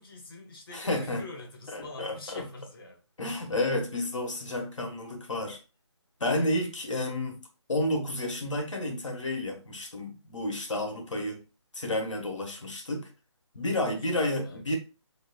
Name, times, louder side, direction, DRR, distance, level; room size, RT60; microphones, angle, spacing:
voice 1, 0.0-3.0 14.0-14.8, left 2 dB, 50° left, 1.1 m, -46 dB
voice 2, 0.7-1.3 1.7-2.5 3.2-5.6 6.2-11.4 11.7-13.1 13.5-14.8, left 1 dB, 80° left, 1.4 m, -31 dB
4.0 x 3.2 x 2.3 m
figure-of-eight pair, 160°, 16 cm